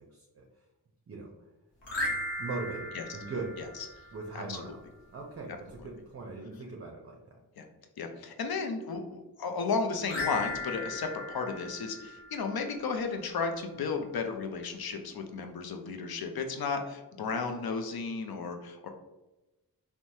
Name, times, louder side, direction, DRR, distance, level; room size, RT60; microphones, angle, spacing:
voice 1, 0.1-0.5 1.1-1.3 2.4-3.6 4.1-4.8 5.1-7.2, right 3 dB, 35° right, 0 dB, 0.5 m, -40 dB
sound 1, 1.8-4.3 10.0-12.7, left 2 dB, 90° left, 0.8 m, -37 dB
voice 2, 4.3-4.8 5.5-5.6 7.6-7.7 8.0-18.9, left 4 dB, 60° left, 5 dB, 0.5 m, -34 dB
3.1 x 2.1 x 2.7 m, 1.0 s
cardioid pair, 45°, 41 cm